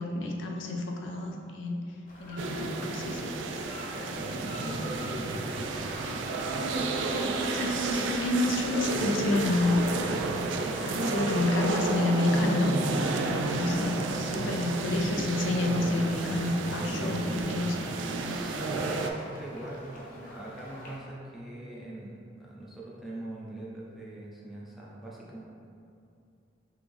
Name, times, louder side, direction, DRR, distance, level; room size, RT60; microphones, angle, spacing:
voice 1, 0.0-1.9 2.2-3.3 4.6-4.9 5.2-5.4 7.1-9.9 10.8-17.8 18.1-18.4, left 2 dB, 90° left, 0 dB, 0.5 m, -29 dB
sound 1, 2.1-21.0, left 1 dB, 45° left, 0.6 m, -47 dB
sound 2, 2.4-19.1, right 3 dB, 80° right, 0.3 m, -31 dB
voice 2, 3.9-5.4 18.2-25.4, right 1 dB, ahead, -6 dB, 0.5 m, -42 dB
3.5 x 3.0 x 3.4 m, 2.5 s
head